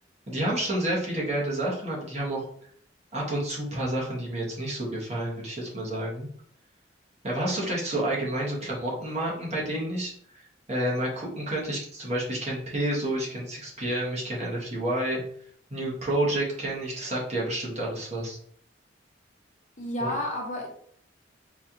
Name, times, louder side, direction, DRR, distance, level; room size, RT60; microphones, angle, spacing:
voice 1, 0.3-2.4 3.1-6.3 7.2-10.4 10.7-15.2 15.7-18.4, right 1 dB, 35° right, -4 dB, 1.1 m, -29 dB
voice 2, 19.8-20.7, left 1 dB, 40° left, 0 dB, 0.8 m, -30 dB
4.2 x 2.4 x 2.8 m, 0.62 s
head